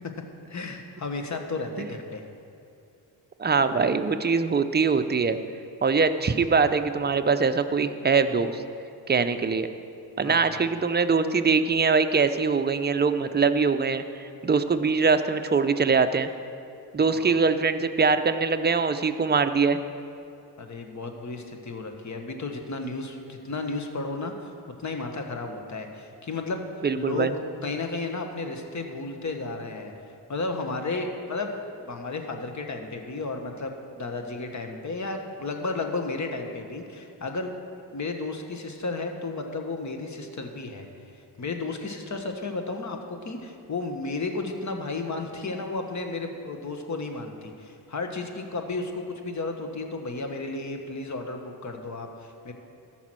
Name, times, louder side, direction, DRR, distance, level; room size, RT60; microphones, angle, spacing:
voice 1, 0.5-2.3 10.2-10.6 17.1-17.4 20.6-24.5 24.8-27.3 27.6-29.9 30.3-31.5 31.8-37.5 37.9-40.9 41.4-52.5, left 3 dB, 40° left, 5 dB, 1.3 m, -33 dB
voice 2, 3.4-5.4 5.8-8.6 9.1-9.7 10.2-16.3 16.9-19.8 26.8-27.3, right 5 dB, 25° right, 9 dB, 0.5 m, -23 dB
13.5 x 6.0 x 6.2 m, 2.5 s
cardioid pair, 85°, 42 cm